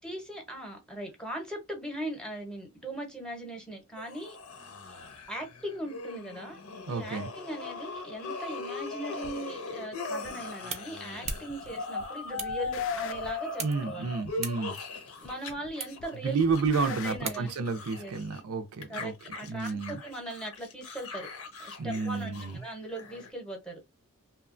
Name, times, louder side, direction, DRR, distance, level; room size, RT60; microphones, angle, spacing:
voice 1, 0.0-4.4 5.3-6.6 6.9-14.1 15.2-16.4 16.8-17.5 18.0-18.1 18.9-21.3 21.6-23.8, right 1 dB, 5° left, 0.7 m, -39 dB
sound 1, 4.0-15.5 15.8-18.4 18.8-23.3, left 4 dB, 80° left, 0.8 m, -39 dB
voice 2, 6.9-7.3 13.6-14.8 16.2-19.1 19.5-20.0 21.8-22.6, right 4 dB, 80° right, 0.5 m, -30 dB
sound 2, 9.2-9.4 10.2-10.3 11.2-11.7 12.0-13.5 14.2-14.3 15.2-15.7 16.0-17.2, left 7 dB, 60° left, 0.3 m, -44 dB
sound 3, 10.0-17.9, right 5 dB, 30° right, 0.4 m, -43 dB
2.8 x 2.2 x 2.5 m
head